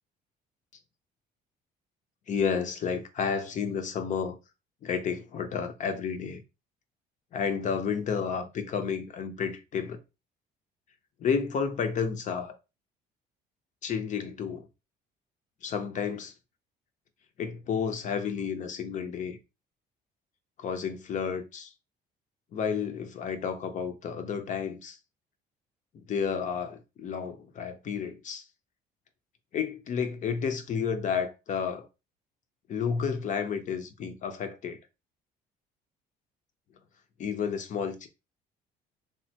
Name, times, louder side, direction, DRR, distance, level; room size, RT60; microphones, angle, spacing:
voice 1, 2.3-4.4 4.8-6.4 7.3-10.0 11.2-12.6 13.8-14.7 15.6-16.3 17.4-19.4 20.6-21.7 22.5-25.0 25.9-28.4 29.5-31.9 32.7-34.8 37.2-38.1, left 6 dB, 45° left, 0.6 m, -31 dB
3.5 x 2.2 x 2.7 m
cardioid pair, 110°, 17 cm